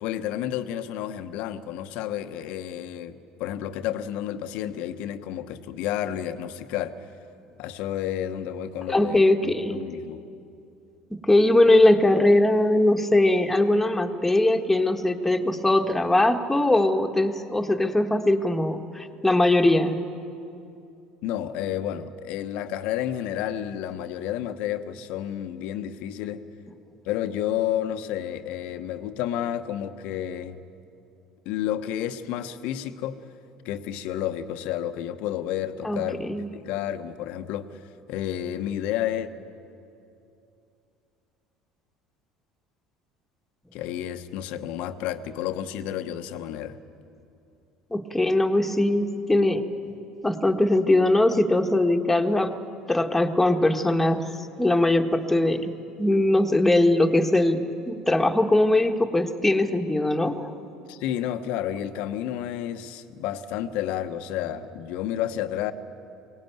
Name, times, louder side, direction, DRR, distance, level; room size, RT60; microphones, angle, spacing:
voice 1, 0.0-6.9 7.6-10.2 21.2-26.4 27.0-30.6 31.4-33.2 33.6-36.2 36.5-37.7 38.1-39.3 43.7-46.8 60.9-65.7, left 11 dB, 65° left, 10 dB, 1.1 m, -31 dB
voice 2, 8.9-9.8 11.2-20.0 35.8-36.5 47.9-49.6 50.2-52.5 52.9-54.3 54.6-60.5, left 1 dB, 10° left, 4 dB, 1.7 m, -21 dB
22.0 x 18.0 x 9.3 m, 2.7 s
hypercardioid pair, 70°, 2 cm